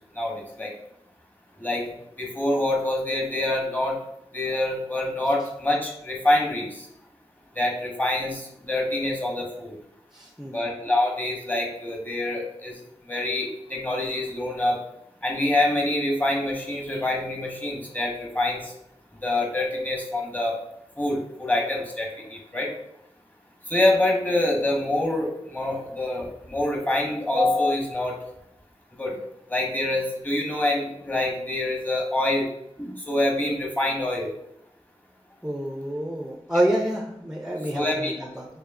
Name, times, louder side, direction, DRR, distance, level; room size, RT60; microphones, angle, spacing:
voice 1, 0.2-0.7 1.6-1.9 2.2-4.0 4.3-6.9 7.6-9.8 10.5-12.8 13.1-14.8 15.2-18.7 19.2-20.5 21.0-22.7 23.7-28.1 29.0-29.1 29.5-32.5 32.8-34.3 37.7-38.1, left 1 dB, 15° left, -1 dB, 0.9 m, -26 dB
voice 2, 10.1-10.6 35.4-38.5, right 1 dB, 5° right, 1 dB, 0.4 m, -28 dB
4.7 x 2.6 x 2.5 m, 0.77 s
wide cardioid pair, 60°, 11 cm